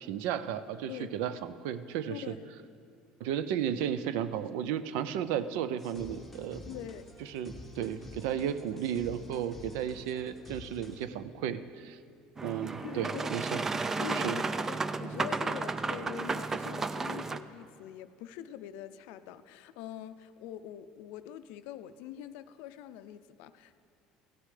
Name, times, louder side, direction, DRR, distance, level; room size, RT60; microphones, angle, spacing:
voice 1, 0.0-2.4 3.2-6.6 7.3-12.0 12.4-13.6 14.1-14.4, right 9 dB, 80° right, 13 dB, 0.5 m, -34 dB
voice 2, 2.1-2.5 6.7-7.0 12.7-13.4 14.0-23.8, left 10 dB, 75° left, 12 dB, 0.4 m, -44 dB
sound 1, 5.8-11.0, left 1 dB, 5° left, 1.0 m, -48 dB
Boat Water vehicle, 12.4-17.4, right 3 dB, 20° right, 0.3 m, -33 dB
16.0 x 9.5 x 3.3 m, 2.3 s
cardioid pair, 130°, 2 cm